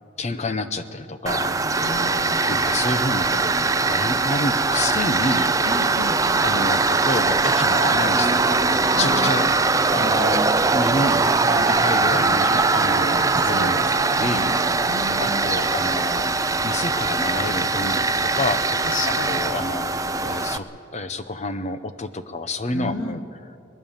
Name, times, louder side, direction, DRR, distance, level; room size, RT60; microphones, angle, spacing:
voice 1, 0.2-1.5 2.5-5.6 6.4-9.5 9.9-16.3 16.6-18.8 19.1-20.7 20.9-23.2, left 2 dB, 35° left, 10 dB, 0.9 m, -29 dB
Tools, 1.3-20.6, right 3 dB, 15° right, 0.5 m, -21 dB
voice 2, 1.8-2.8 5.6-6.5 8.9-9.5 13.4-15.7 18.8-19.4 22.7-23.2, left 3 dB, 90° left, 9 dB, 1.2 m, -33 dB
22.5 x 19.5 x 7.3 m, 2.5 s
head